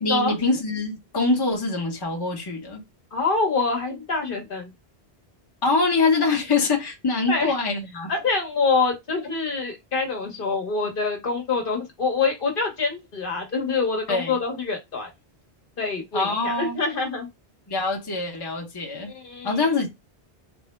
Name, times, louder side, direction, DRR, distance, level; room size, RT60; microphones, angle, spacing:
voice 1, 0.0-2.8 5.6-8.1 14.1-14.4 16.1-16.8 17.7-19.1 19.4-19.9, left 3 dB, 25° left, 0.8 m, -24 dB
voice 2, 3.1-4.7 7.3-7.5 8.1-15.1 15.8-17.3 19.1-19.6, left 4 dB, 60° left, 1.1 m, -25 dB
3.5 x 2.0 x 3.1 m
omnidirectional pair, 1.1 m